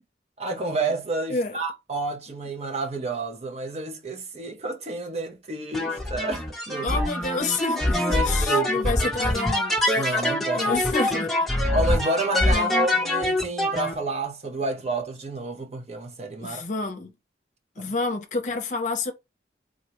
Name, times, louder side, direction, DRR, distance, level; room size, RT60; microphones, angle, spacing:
voice 1, 0.4-7.0 8.1-9.1 9.9-10.7 11.7-16.6 17.8-17.9, right 2 dB, 35° right, 0.6 m, -30 dB
sound 1, 5.7-13.9, left 1 dB, ahead, 0.7 m, -24 dB
voice 2, 6.8-10.1 10.5-11.3 12.5-12.7 16.4-17.1 17.8-19.1, left 3 dB, 40° left, 0.6 m, -29 dB
3.8 x 2.2 x 2.9 m
head